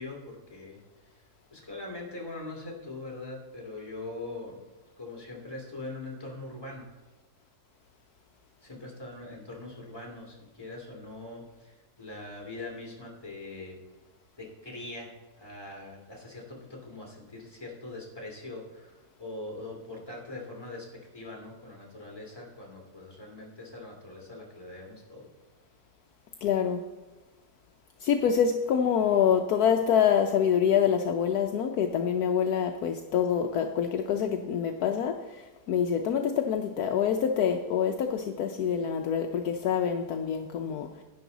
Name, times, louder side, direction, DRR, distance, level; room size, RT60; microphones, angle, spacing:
voice 1, 0.0-4.6 5.0-6.9 8.6-13.8 14.4-15.1 15.4-25.3, left 2 dB, 15° left, -2 dB, 2.5 m, -42 dB
voice 2, 26.4-26.8 28.0-40.9, left 8 dB, 70° left, 4 dB, 1.1 m, -26 dB
11.0 x 9.1 x 4.0 m, 1.2 s
omnidirectional pair, 1.8 m